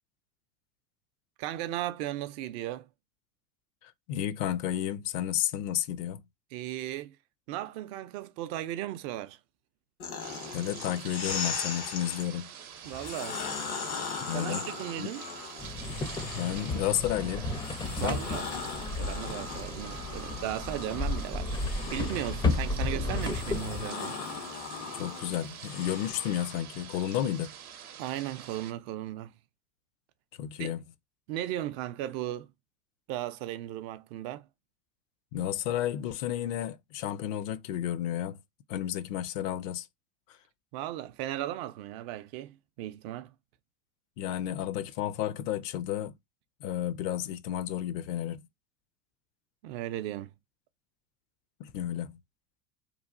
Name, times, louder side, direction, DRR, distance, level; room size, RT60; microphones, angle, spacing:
voice 1, 1.4-2.9 6.5-7.2 7.5-9.4 12.8-13.4 14.3-15.3 18.0-18.4 18.9-21.6 21.9-24.2 28.0-29.3 30.6-30.7 31.3-32.5 33.1-34.5 40.7-43.3 49.6-50.3, right 13 dB, 50° right, 0.4 m, -36 dB
voice 2, 3.8-6.2 10.5-12.5 14.2-14.6 15.0-15.1 16.4-17.5 17.9-18.2 24.9-27.5 30.4-30.8 35.3-38.4 38.7-39.9 44.2-46.1 46.6-48.4 51.6-52.2, left 11 dB, 60° left, 0.5 m, -32 dB
sound 1, 10.0-12.3 12.8-16.9 17.4-26.6, left 4 dB, 80° left, 1.3 m, -39 dB
sound 2, 10.2-28.7, right 9 dB, 90° right, 0.7 m, -46 dB
sound 3, 15.6-23.9, left 2 dB, 10° left, 0.4 m, -33 dB
3.1 x 2.2 x 2.5 m
hypercardioid pair, 95°, 43 cm